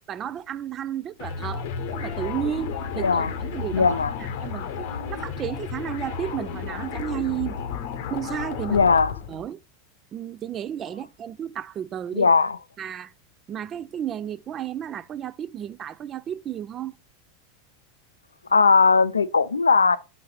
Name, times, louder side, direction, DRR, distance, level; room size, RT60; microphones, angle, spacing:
voice 1, 0.1-1.7 1.9-7.6 8.1-8.8 9.3-9.6 10.1-12.3 12.8-13.1 13.5-17.0, right 10 dB, 30° right, 0.4 m, -33 dB
sound 1, 1.2-9.4, left 6 dB, 55° left, 0.8 m, -32 dB
voice 2, 3.7-4.1 8.7-9.1 12.1-12.6 18.5-20.0, left 5 dB, 80° left, 0.4 m, -18 dB
8.2 x 4.0 x 3.2 m
figure-of-eight pair, 85°, 0 cm